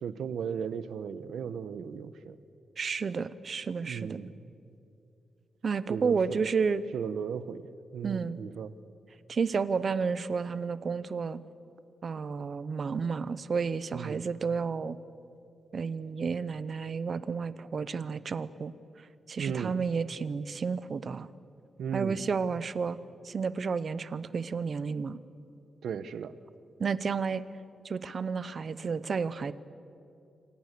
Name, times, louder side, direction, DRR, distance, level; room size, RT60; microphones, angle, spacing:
voice 1, 0.0-2.4 3.8-4.3 5.9-6.4 6.9-8.7 13.9-14.2 19.4-19.8 21.8-22.2 25.8-26.3, right 7 dB, 85° right, 14 dB, 1.0 m, -36 dB
voice 2, 2.8-4.2 5.6-6.8 8.0-8.4 9.3-11.4 12.0-15.0 15.7-21.3 21.9-23.0 23.2-25.2 26.8-27.4 27.8-29.5, right 5 dB, 45° right, 15 dB, 0.8 m, -31 dB
27.5 x 26.0 x 6.8 m, 2.8 s
wide cardioid pair, 160°, 0 cm